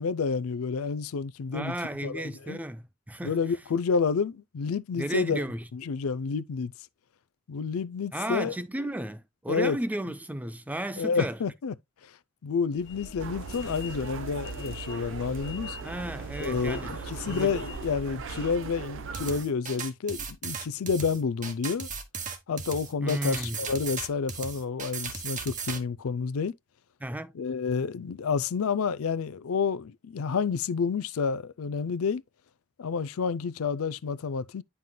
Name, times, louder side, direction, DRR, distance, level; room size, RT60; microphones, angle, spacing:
voice 1, 0.0-1.8 2.0-2.6 3.2-5.4 5.7-6.7 7.5-8.5 9.5-9.8 11.0-11.7 12.0-12.1 12.4-15.8 16.4-21.9 22.5-26.5 27.3-32.2 32.8-34.6, left 5 dB, 70° left, 0.4 m, -29 dB
voice 2, 1.5-3.4 5.0-5.7 8.1-11.4 15.8-16.9 17.3-17.5 23.0-23.6 27.0-27.3, right 1 dB, 5° right, 0.4 m, -34 dB
sound 1, 12.7-18.7, left 3 dB, 55° left, 1.3 m, -44 dB
sound 2, 13.2-19.5, right 6 dB, 60° right, 0.6 m, -39 dB
sound 3, 19.1-25.8, right 5 dB, 35° right, 1.1 m, -36 dB
9.2 x 5.5 x 2.2 m
head